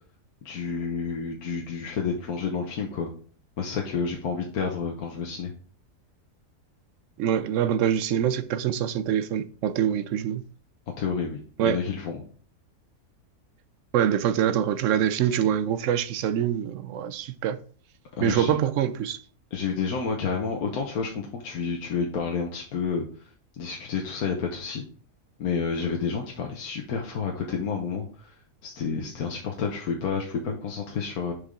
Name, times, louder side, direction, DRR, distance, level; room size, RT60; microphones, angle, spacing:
voice 1, 0.4-3.1 3.6-5.5 11.0-12.2 18.2-18.6 19.5-23.0 23.6-24.8 25.4-28.4 28.6-31.3, left 5 dB, 75° left, 1.4 m, -30 dB
voice 2, 7.2-10.4 11.6-11.8 13.9-17.6 18.2-19.2, right 9 dB, 70° right, 0.8 m, -25 dB
6.8 x 5.3 x 3.7 m
omnidirectional pair, 1.6 m